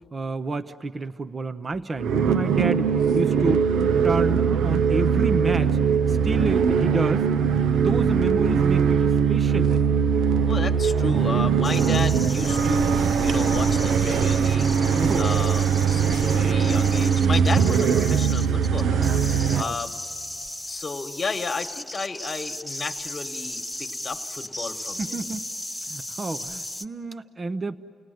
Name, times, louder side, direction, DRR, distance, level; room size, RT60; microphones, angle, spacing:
voice 1, 0.1-2.9 3.1-3.7 4.0-5.8 6.1-7.3 7.7-9.9 14.9-15.3 19.4-19.8 25.0-25.5 25.9-27.8, right 3 dB, 30° right, 10 dB, 0.6 m, -29 dB
sound 1, 2.0-19.6, right 6 dB, 85° right, 0.5 m, -21 dB
voice 2, 10.4-14.8 15.2-19.1 19.6-19.9 20.7-25.2, left 4 dB, 35° left, 7 dB, 1.4 m, -33 dB
sound 2, 11.6-26.8, left 1 dB, ahead, 1.0 m, -36 dB
30.0 x 19.0 x 9.2 m, 2.9 s
cardioid pair, 120°, 0 cm